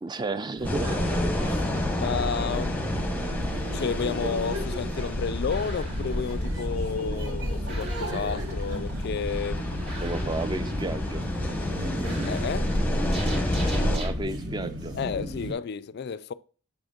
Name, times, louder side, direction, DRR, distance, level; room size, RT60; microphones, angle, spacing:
voice 1, 0.0-1.0 10.0-11.2 13.6-14.9, right 2 dB, 20° right, 0.4 m, -32 dB
sound 1, 0.6-14.0, left 1 dB, 5° left, 0.9 m, -30 dB
sound 2, 0.6-15.5, equal, 75° right, 3.7 m, -36 dB
voice 2, 1.4-3.0 3.7-9.9 12.2-12.7 14.9-16.3, left 6 dB, 50° left, 0.3 m, -32 dB
sound 3, 5.5-14.2, equal, 50° right, 2.2 m, -33 dB
7.7 x 7.1 x 2.4 m
head